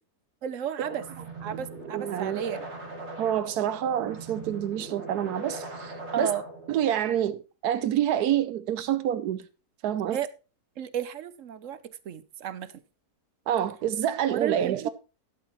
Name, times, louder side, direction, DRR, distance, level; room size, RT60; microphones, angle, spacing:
voice 1, 0.4-1.0 1.4-2.6 6.1-6.5 10.1-10.3 10.8-11.8 12.1-12.7 14.3-14.9, right 9 dB, 60° right, 1.0 m, -33 dB
sound 1, 0.8-6.8, right 2 dB, 45° right, 3.1 m, -40 dB
voice 2, 1.9-2.4 3.2-6.3 6.7-9.5 9.8-10.2 13.5-14.9, right 10 dB, 80° right, 1.2 m, -27 dB
12.0 x 11.5 x 3.1 m
omnidirectional pair, 1.6 m